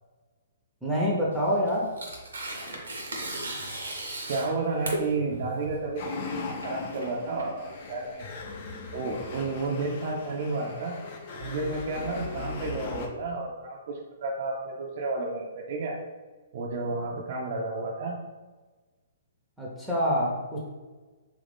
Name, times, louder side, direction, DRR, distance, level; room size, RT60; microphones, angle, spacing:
voice 1, 0.8-1.9 19.6-20.7, equal, 5° right, -6 dB, 0.6 m, -26 dB
Tearing, 1.3-8.1, right 1 dB, 90° right, 0.8 m, -36 dB
voice 2, 4.3-8.3 8.9-11.0 11.4-16.0 16.5-18.2, right 3 dB, 55° right, -1 dB, 0.4 m, -31 dB
sound 1, 6.0-13.1, left 4 dB, 50° left, 0.6 m, -39 dB
3.0 x 2.5 x 3.4 m, 1.3 s
hypercardioid pair, 135°, 0 cm